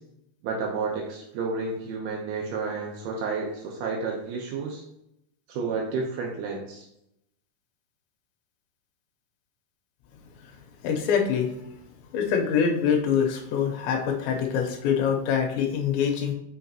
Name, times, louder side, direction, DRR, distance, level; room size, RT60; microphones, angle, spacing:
voice 1, 0.4-4.8 5.5-6.8, right 4 dB, 75° right, -1 dB, 2.5 m, -31 dB
voice 2, 10.8-11.6 12.1-16.3, left 7 dB, 80° left, 2 dB, 3.1 m, -24 dB
6.2 x 6.0 x 2.9 m, 0.80 s
omnidirectional pair, 5.2 m